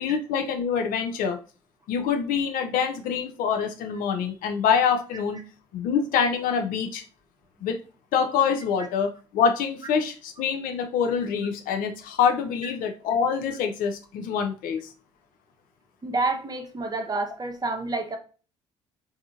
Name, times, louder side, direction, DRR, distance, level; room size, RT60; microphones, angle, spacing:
voice 1, 0.0-1.4 1.9-5.4 5.7-7.0 7.6-7.8 8.1-14.8, left 6 dB, 65° left, 5 dB, 0.6 m, -25 dB
voice 2, 16.0-18.2, right 3 dB, 25° right, 4 dB, 0.8 m, -29 dB
3.5 x 2.7 x 2.4 m, 0.36 s
hypercardioid pair, 55°, 16 cm